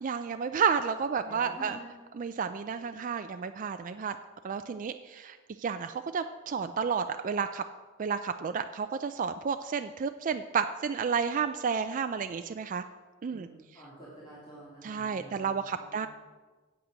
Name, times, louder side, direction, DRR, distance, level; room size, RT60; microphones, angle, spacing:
voice 1, 0.0-1.8 2.2-4.2 4.4-7.6 8.0-12.8 13.2-13.5 14.8-16.1, right 6 dB, 40° right, 8 dB, 0.4 m, -31 dB
voice 2, 1.2-1.9 13.3-16.0, right 1 dB, 20° left, -8 dB, 2.8 m, -48 dB
8.8 x 8.1 x 6.3 m, 1.3 s
head